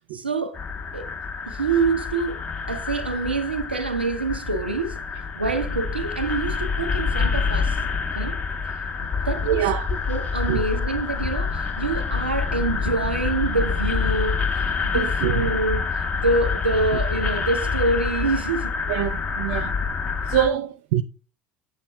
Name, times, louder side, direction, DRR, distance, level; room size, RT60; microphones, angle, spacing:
voice 1, 0.1-0.6 0.9-1.1 1.5-5.0 5.4-7.8 8.1-8.4 9.2-9.7 10.1-18.7, right 3 dB, 90° right, 0.9 m, -26 dB
sound 1, 0.5-20.5, left 5 dB, 30° left, 1.7 m, -27 dB
voice 2, 9.4-9.9 10.5-10.7 14.9-15.4 18.9-19.8 20.3-21.0, right 11 dB, 65° right, 0.5 m, -25 dB
7.5 x 7.3 x 2.3 m
figure-of-eight pair, 65°, 6 cm